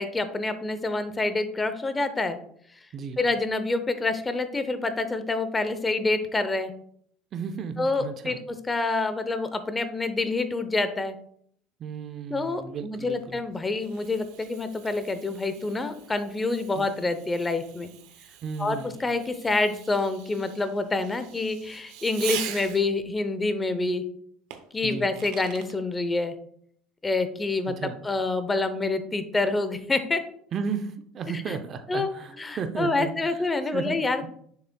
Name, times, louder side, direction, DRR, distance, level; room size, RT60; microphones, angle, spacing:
voice 1, 0.0-2.4 3.2-6.7 7.8-8.4 8.7-11.1 12.3-17.9 18.6-24.0 24.7-26.3 27.0-30.2 31.3-31.6 31.9-34.3, left 3 dB, 15° left, 10 dB, 0.6 m, -27 dB
voice 2, 7.3-8.4 11.8-13.4 16.7-16.9 18.4-18.9 24.8-25.1 27.7-28.0 30.5-33.1 33.7-34.0, right 6 dB, 35° right, 8 dB, 0.6 m, -34 dB
Fireworks, 13.1-23.1 24.5-25.8, right 11 dB, 75° right, 0.7 m, -42 dB
6.9 x 6.5 x 2.2 m, 0.64 s
cardioid pair, 145°, 0 cm